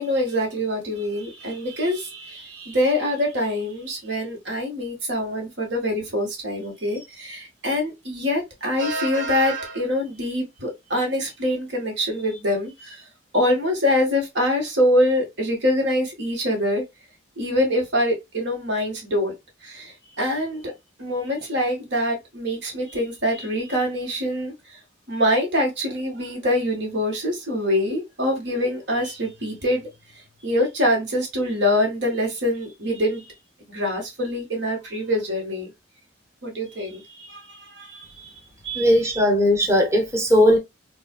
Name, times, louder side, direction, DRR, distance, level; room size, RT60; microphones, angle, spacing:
voice 1, 0.0-13.0 13.3-16.8 17.4-19.3 19.6-20.7 21.0-24.5 25.1-29.9 30.4-33.3 33.7-35.7 36.4-38.4 38.6-39.2, left 1 dB, 65° right, 1.5 m, -24 dB
voice 2, 38.7-40.6, equal, 15° right, 0.8 m, -18 dB
3.8 x 2.4 x 2.2 m
head